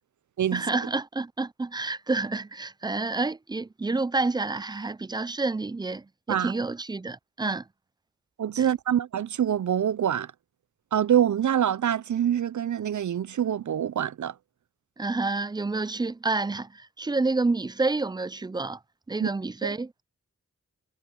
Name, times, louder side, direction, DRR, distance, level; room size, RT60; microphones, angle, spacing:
voice 1, 0.5-7.7 8.6-8.7 15.0-18.8 19.1-19.9, right 3 dB, 15° right, 0.3 m, -29 dB
voice 2, 8.4-10.3 10.9-14.3 19.2-19.3 19.6-19.8, right 9 dB, 75° right, 0.6 m, -25 dB
wide cardioid pair, 70°, 30 cm